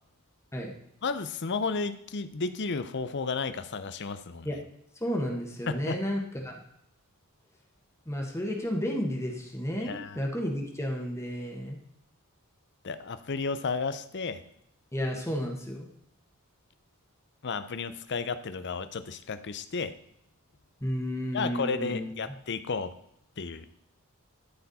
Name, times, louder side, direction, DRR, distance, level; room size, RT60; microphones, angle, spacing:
voice 1, 1.0-4.5 5.7-6.0 9.8-10.2 12.8-14.4 17.4-19.9 21.3-22.9 23.4-23.7, left 4 dB, 55° left, 12 dB, 0.7 m, -32 dB
voice 2, 5.0-6.5 8.1-11.8 14.9-15.9 20.8-22.3, equal, 15° left, 0 dB, 1.4 m, -32 dB
13.0 x 4.6 x 4.2 m, 0.75 s
head